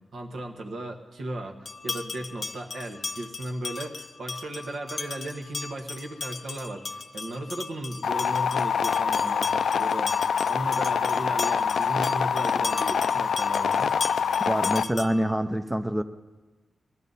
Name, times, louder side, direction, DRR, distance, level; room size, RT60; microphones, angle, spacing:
voice 1, 0.1-13.9, right 1 dB, 75° right, 2 dB, 1.5 m, -36 dB
sound 1, 1.7-15.3, left 4 dB, 50° left, 0.7 m, -37 dB
sound 2, 8.0-14.8, left 6 dB, 80° left, 0.3 m, -25 dB
voice 2, 14.5-16.0, equal, 10° right, 9 dB, 0.4 m, -26 dB
20.0 x 13.0 x 4.1 m, 1.2 s
wide cardioid pair, 125°, 0 cm